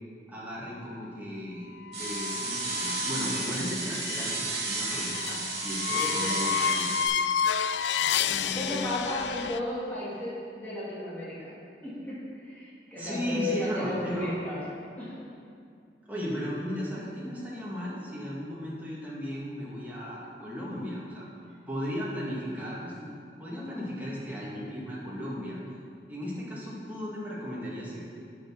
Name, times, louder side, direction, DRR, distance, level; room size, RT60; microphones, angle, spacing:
voice 1, 0.3-7.0 8.2-8.9 13.0-14.3 16.1-21.3 21.7-23.1 23.4-25.6 26.1-28.1, equal, 10° right, -7 dB, 2.2 m, -36 dB
sound 1, 1.9-9.6, left 7 dB, 85° left, 0.3 m, -31 dB
sound 2, 1.9-7.1, right 3 dB, 65° right, 3.0 m, -32 dB
voice 2, 5.9-6.3 8.0-8.1 8.4-11.5 11.8-14.6 15.0-15.2, left 1 dB, 10° left, -10 dB, 2.8 m, -34 dB
9.5 x 7.3 x 6.0 m, 2.4 s
head